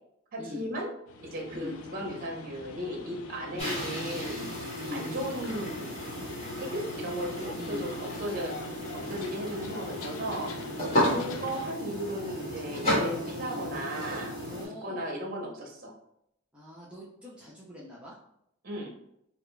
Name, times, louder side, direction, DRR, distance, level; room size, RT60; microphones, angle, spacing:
voice 1, 0.3-0.9 1.2-4.5 4.9-5.9 6.6-7.9 8.2-8.5 9.0-14.3 14.8-15.9 18.6-18.9, equal, 45° right, 0 dB, 0.8 m, -36 dB
sound 1, 1.1-11.7, left 3 dB, 75° left, 0.4 m, -44 dB
sound 2, 3.6-14.7, equal, 30° left, 1.5 m, -33 dB
voice 2, 4.8-5.1 7.5-7.8 10.9-11.2 13.4-13.7 14.5-15.0 16.5-18.1, left 2 dB, 5° right, -7 dB, 0.6 m, -42 dB
4.9 x 2.4 x 2.2 m, 0.78 s
head